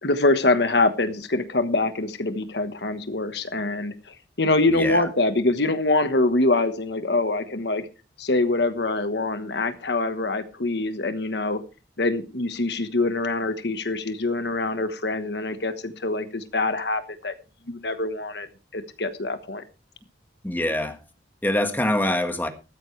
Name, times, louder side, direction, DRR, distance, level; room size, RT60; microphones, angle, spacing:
voice 1, 0.0-3.9 4.4-7.9 8.2-11.6 12.0-17.3 17.7-18.5 18.7-19.6, left 2 dB, 70° left, 10 dB, 1.3 m, -24 dB
voice 2, 4.7-5.1 20.4-21.0 21.4-22.5, left 1 dB, 10° left, 6 dB, 1.6 m, -24 dB
14.5 x 13.0 x 3.3 m, 0.31 s
head